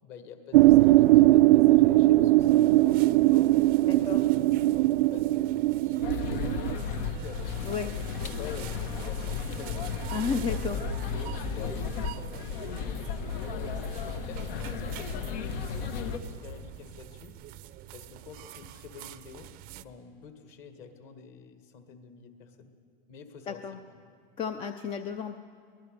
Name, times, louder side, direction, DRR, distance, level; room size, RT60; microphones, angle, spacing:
voice 1, 0.0-3.5 3.9-6.2 6.6-10.0 10.7-17.3 17.9-19.5 19.8-22.7 23.1-23.6 23.9-24.0, left 6 dB, 40° left, 7 dB, 2.1 m, -48 dB
sound 1, 0.5-6.7, right 17 dB, 75° right, 0.5 m, -20 dB
sound 2, 2.4-19.8, right 13 dB, 30° right, 0.6 m, -46 dB
voice 2, 3.9-4.2 7.6-7.9 10.1-10.8 23.5-23.8 24.4-25.4, left 6 dB, 20° left, 8 dB, 0.5 m, -32 dB
sound 3, 6.0-16.2, left 5 dB, 70° left, 1.6 m, -34 dB
23.5 x 19.0 x 6.7 m, 2.1 s
supercardioid pair, 145°, 29 cm